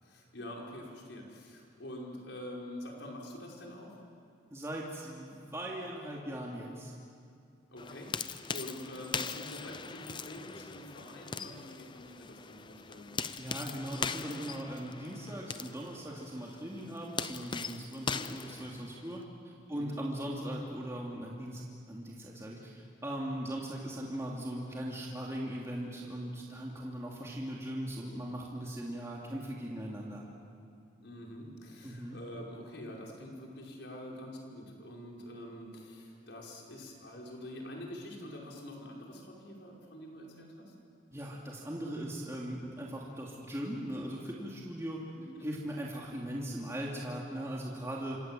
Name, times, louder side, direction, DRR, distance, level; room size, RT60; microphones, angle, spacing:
voice 1, 0.0-4.0 7.7-13.1 19.7-20.0 31.0-40.7 45.2-45.5, left 1 dB, 70° left, -1 dB, 5.6 m, -46 dB
voice 2, 4.5-6.9 13.4-21.6 21.9-30.2 31.8-32.2 41.1-45.0 45.4-48.2, right 1 dB, 15° right, -3 dB, 2.8 m, -39 dB
sound 1, 7.8-19.2, left 5 dB, 25° left, 0.7 m, -40 dB
27.5 x 27.0 x 7.8 m, 2.4 s
head